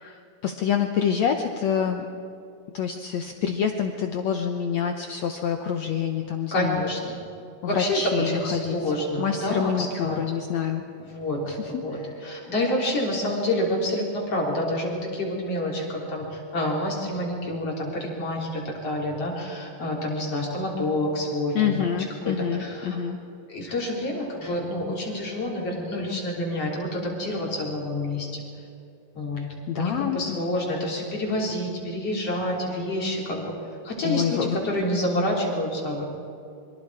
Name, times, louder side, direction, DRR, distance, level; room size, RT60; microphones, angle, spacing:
voice 1, 0.0-2.0 2.7-6.8 7.6-8.8 9.2-10.8 11.4-12.1 21.5-23.2 29.4-30.4 34.0-34.6, left 8 dB, 80° left, 4 dB, 1.5 m, -27 dB
voice 2, 6.5-7.2 7.7-10.2 11.0-11.4 11.8-21.7 22.2-23.0 23.5-28.4 29.1-29.4 29.7-33.5 33.8-36.0, left 1 dB, 40° left, -2 dB, 4.2 m, -28 dB
26.0 x 24.5 x 4.8 m, 2.6 s
omnidirectional pair, 4.5 m